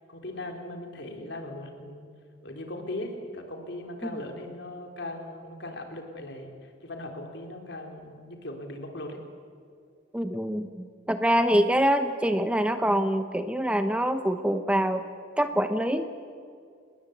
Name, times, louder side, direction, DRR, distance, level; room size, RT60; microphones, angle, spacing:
voice 1, 0.1-2.1 2.4-6.5 6.8-9.2, left 1 dB, 60° left, 3 dB, 4.3 m, -38 dB
voice 2, 10.1-15.1 15.4-16.1, equal, 5° right, 8 dB, 0.9 m, -25 dB
29.5 x 20.5 x 8.4 m, 2.3 s
head